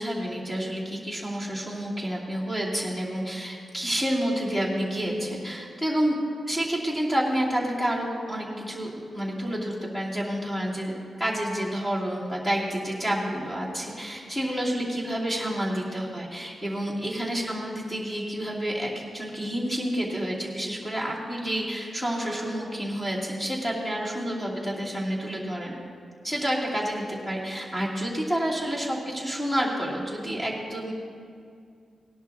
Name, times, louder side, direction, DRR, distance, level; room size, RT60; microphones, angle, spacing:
voice 1, 0.0-6.2 6.5-25.7 26.2-30.9, equal, 15° left, -5 dB, 2.7 m, -29 dB
18.0 x 11.0 x 2.8 m, 2.3 s
wide cardioid pair, 130°, 0 cm